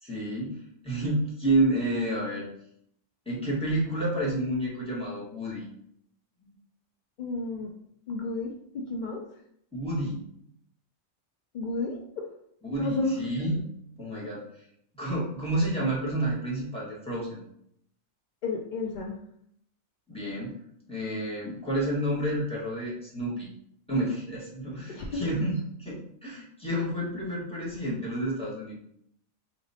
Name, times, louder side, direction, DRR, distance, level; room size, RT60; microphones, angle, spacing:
voice 1, 0.0-2.4 3.2-5.7 6.4-6.5 9.7-10.2 12.6-13.6 14.0-14.4 14.9-17.4 20.1-20.5 20.9-23.5 23.9-28.7, right 1 dB, 5° left, -7 dB, 1.3 m, -30 dB
voice 2, 7.2-7.7 8.1-9.4 11.5-12.3 12.8-13.2 18.4-19.2 24.9-25.3, left 3 dB, 75° left, 0 dB, 0.4 m, -32 dB
4.9 x 3.0 x 2.7 m, 0.72 s
omnidirectional pair, 1.4 m